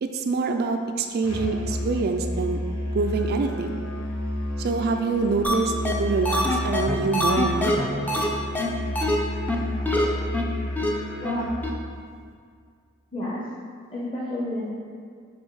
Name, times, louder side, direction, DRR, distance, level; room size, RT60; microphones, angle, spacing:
voice 1, 0.0-2.6 2.9-3.8 4.6-7.7, right 4 dB, 50° right, 5 dB, 0.3 m, -25 dB
Musical instrument, 1.2-11.6, left 1 dB, 80° left, 0.9 m, -31 dB
sound 1, 5.4-5.5 5.8-5.9 6.2-8.3 8.5-8.7 9.0-9.2 9.5-9.6 9.9-10.0 10.3-10.4 10.8-10.9 11.2-11.3 11.6-11.7, left 1 dB, 10° left, 0.5 m, -24 dB
voice 2, 11.2-11.6 13.1-13.4 13.9-14.7, left 1 dB, 25° left, -8 dB, 0.9 m, -30 dB
5.3 x 3.8 x 4.7 m, 2.1 s
head